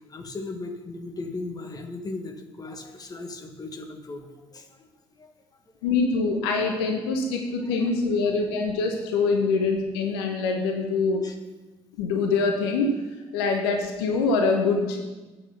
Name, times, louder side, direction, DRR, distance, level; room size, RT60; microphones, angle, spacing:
voice 1, 0.1-4.9 5.2-5.3 5.8-5.9 7.6-7.9 11.2-11.4, left 3 dB, 30° left, 4 dB, 1.6 m, -37 dB
voice 2, 5.8-11.2 12.0-13.0 13.3-15.0, left 4 dB, 65° left, 3 dB, 0.9 m, -24 dB
8.1 x 6.6 x 6.8 m, 1.2 s
figure-of-eight pair, 50°, 14 cm